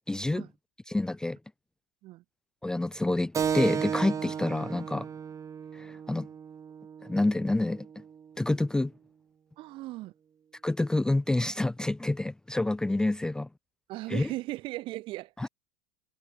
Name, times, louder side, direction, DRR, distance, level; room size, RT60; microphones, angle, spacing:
voice 1, 0.1-0.5 0.9-1.4 2.6-5.1 5.7-6.3 7.0-7.9 8.4-8.9 10.6-13.5 14.1-14.3 15.4-15.5, left 2 dB, 5° left, 0.5 m, -28 dB
Keyboard (musical), 3.3-8.4, right 7 dB, 30° right, 2.6 m, -34 dB
voice 2, 9.6-10.1 13.9-15.5, right 18 dB, 50° right, 1.4 m, -37 dB
hypercardioid pair, 85°, 11 cm